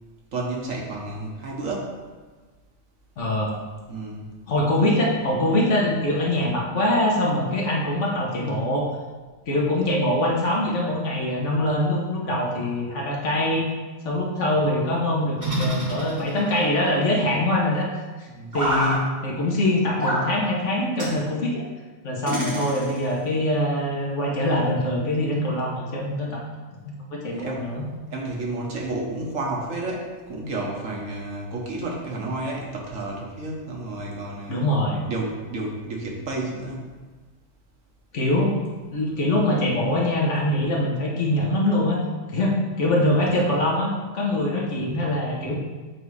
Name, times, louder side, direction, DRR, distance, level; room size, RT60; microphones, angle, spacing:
voice 1, 0.3-2.0 3.9-4.3 4.7-5.0 18.3-18.6 27.2-27.7 28.1-34.6 35.0-36.9, right 2 dB, 75° right, -2 dB, 1.5 m, -31 dB
voice 2, 3.2-3.5 4.5-8.8 9.5-13.7 14.0-17.9 18.2-18.3 18.5-21.6 22.0-26.4 27.1-27.8 34.5-35.0 38.1-38.5 38.9-42.0 42.3-45.6, left 1 dB, 65° left, -3 dB, 1.5 m, -23 dB
sound 1, 15.4-16.6 18.5-19.0 20.0-20.3 21.0-21.2 22.3-23.1, equal, 15° right, 1.5 m, -26 dB
7.7 x 2.7 x 4.7 m, 1.3 s
omnidirectional pair, 1.4 m